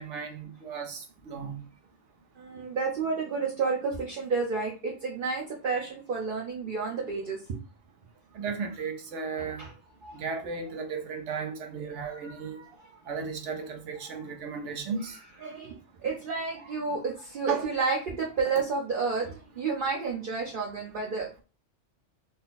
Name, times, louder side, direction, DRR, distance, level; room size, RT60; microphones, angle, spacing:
voice 1, 0.0-1.6 8.3-9.6 10.1-12.6 13.1-15.2 16.9-17.0 17.5-17.7 18.6-18.7 19.2-19.3, right 5 dB, 75° right, 1.1 m, -35 dB
voice 2, 2.4-7.6 9.6-9.7 10.0-10.2 11.9-12.7 15.4-21.4, right 4 dB, 50° right, 0.9 m, -31 dB
4.0 x 2.2 x 3.9 m
omnidirectional pair, 1.2 m